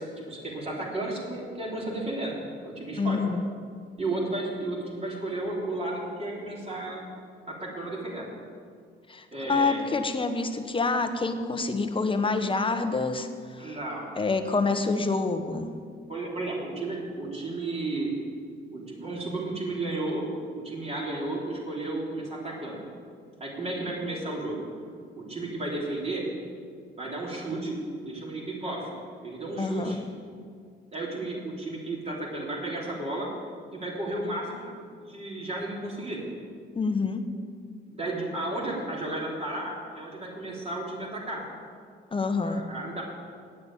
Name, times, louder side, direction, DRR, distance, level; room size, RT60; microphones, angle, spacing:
voice 1, 0.0-2.4 2.6-3.2 4.0-7.0 7.5-8.3 9.3-9.8 13.6-14.1 16.1-18.1 18.7-20.2 20.5-22.9 23.4-24.6 25.2-26.3 27.0-27.8 28.0-28.9 29.2-30.0 30.9-33.3 33.7-36.2 37.9-41.4 42.3-43.0, right 2 dB, 30° right, -4 dB, 3.7 m, -33 dB
voice 2, 3.0-3.5 9.1-13.3 13.6-13.8 14.2-15.7 29.6-30.0 36.7-37.3 42.1-42.6, left 3 dB, 25° left, 8 dB, 1.0 m, -27 dB
8.7 x 8.6 x 8.8 m, 2.1 s
cardioid pair, 90°, 20 cm